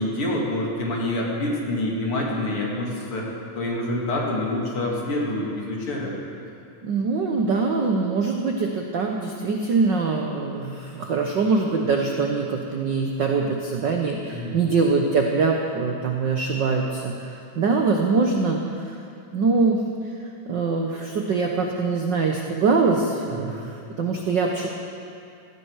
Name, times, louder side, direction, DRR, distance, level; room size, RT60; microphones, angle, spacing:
voice 1, 0.0-6.2 14.3-14.6 23.3-23.6, left 1 dB, 50° left, -2 dB, 3.0 m, -27 dB
voice 2, 6.8-18.6 18.9-19.0 19.3-19.8 20.4-24.7, right 4 dB, 80° right, 1 dB, 1.0 m, -23 dB
17.0 x 15.5 x 4.8 m, 2.5 s
omnidirectional pair, 3.5 m